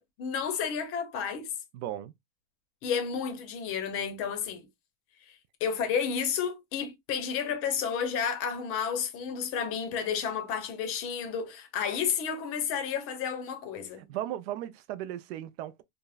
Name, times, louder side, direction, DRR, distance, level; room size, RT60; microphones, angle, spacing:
voice 1, 0.0-1.5 2.8-4.7 5.6-14.1, left 7 dB, 40° left, 0.7 m, -31 dB
voice 2, 1.7-2.1 14.1-15.8, right 12 dB, 65° right, 0.5 m, -36 dB
3.5 x 2.0 x 2.3 m
supercardioid pair, 145°, 35 cm